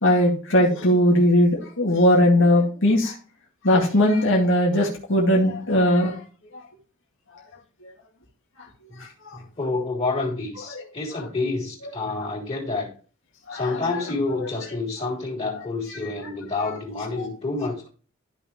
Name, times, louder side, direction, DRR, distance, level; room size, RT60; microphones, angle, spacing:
voice 1, 0.0-3.1 3.6-6.2 13.5-13.7, left 1 dB, 65° left, -2 dB, 2.2 m, -19 dB
voice 2, 9.3-12.9 13.5-17.9, left 3 dB, 30° left, -2 dB, 3.5 m, -28 dB
13.5 x 5.8 x 3.1 m, 0.38 s
head